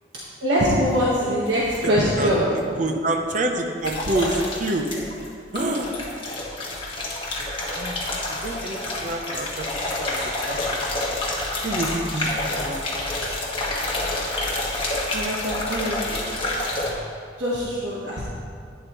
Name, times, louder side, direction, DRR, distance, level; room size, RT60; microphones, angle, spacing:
voice 1, 0.4-2.4 15.1-16.0 17.4-18.2, equal, 75° right, -7 dB, 1.4 m, -23 dB
sound 1, 1.5-2.1 3.8-5.3 5.5-16.9, left 2 dB, 30° left, 1.5 m, -28 dB
voice 2, 2.8-4.9 5.5-5.9 7.8-8.0 8.3-9.7 10.0-10.2 10.5-10.8 11.6-12.9, right 2 dB, 45° right, 3 dB, 0.7 m, -27 dB
11.5 x 9.5 x 3.1 m, 2.3 s
head